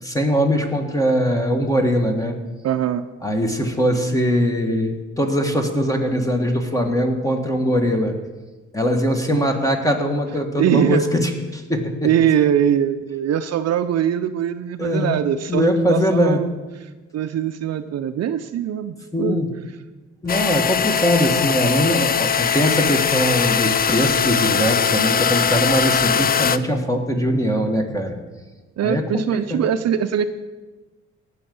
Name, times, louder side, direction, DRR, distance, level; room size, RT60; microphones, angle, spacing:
voice 1, 0.0-2.4 3.2-8.1 8.7-11.9 14.8-15.2 15.5-16.4 19.1-19.5 20.2-28.2 28.8-29.2 29.5-29.7, equal, 10° left, 4 dB, 1.9 m, -21 dB
voice 2, 2.6-3.1 10.5-11.1 12.0-16.5 16.8-19.4 28.8-30.3, right 9 dB, 60° right, 10 dB, 0.6 m, -22 dB
sound 1, 20.3-26.6, left 7 dB, 30° left, 0.5 m, -20 dB
18.0 x 6.5 x 5.5 m, 1.2 s
cardioid pair, 90°, 30 cm